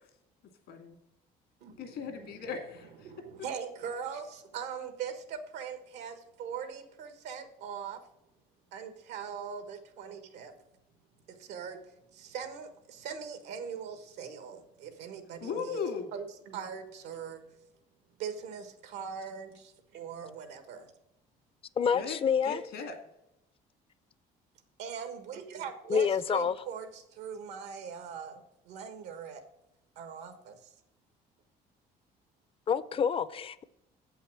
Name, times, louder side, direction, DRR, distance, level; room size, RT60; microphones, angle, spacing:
voice 1, 0.7-1.0 1.8-3.1 15.4-16.1 21.9-23.0, left 5 dB, 80° left, 2.1 m, -37 dB
voice 2, 1.6-2.5 3.0-8.0 8.7-10.5 11.3-11.8 12.1-15.8 16.1-17.5 18.2-20.9 24.8-29.4 29.9-30.7, right 7 dB, 90° right, 1.4 m, -41 dB
voice 3, 21.8-22.6 25.9-26.5 32.7-33.6, left 7 dB, 35° left, 0.5 m, -27 dB
7.9 x 5.6 x 7.4 m
cardioid pair, 110°, 17 cm